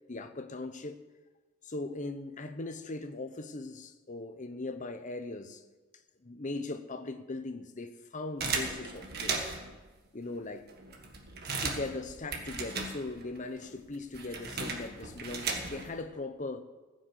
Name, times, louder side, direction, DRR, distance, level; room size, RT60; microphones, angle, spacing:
voice 1, 0.1-1.0 1.6-5.6 6.2-9.6 10.1-10.7 11.6-16.6, left 2 dB, 35° left, 0.8 m, -39 dB
sound 1, 8.4-9.8 10.4-10.5 10.7-13.4 13.6-16.0, right 4 dB, 50° right, 1.6 m, -36 dB
15.0 x 6.4 x 8.1 m
head